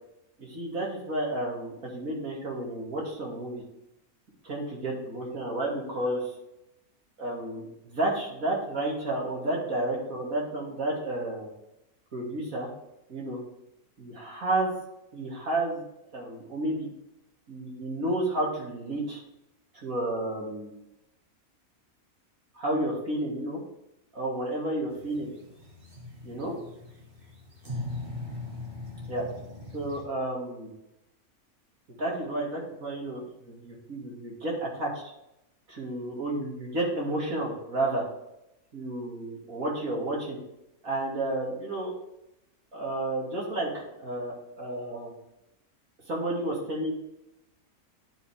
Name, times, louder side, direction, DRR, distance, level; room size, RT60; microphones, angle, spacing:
voice 1, 0.4-3.6 4.4-6.3 7.2-11.5 12.1-12.7 13.1-13.4 14.0-14.7 15.1-15.8 16.1-16.9 17.5-19.2 19.7-20.8 22.5-23.6 24.1-25.3 26.2-26.6 29.1-29.2 29.7-30.8 32.0-35.0 35.7-38.0 38.7-40.4 40.8-41.9 42.7-45.1 46.1-46.9, right 1 dB, 65° right, -3 dB, 2.9 m, -31 dB
sound 1, 24.9-30.0, left 2 dB, 40° right, 1.9 m, -40 dB
11.0 x 5.3 x 3.3 m, 0.86 s
omnidirectional pair, 1.5 m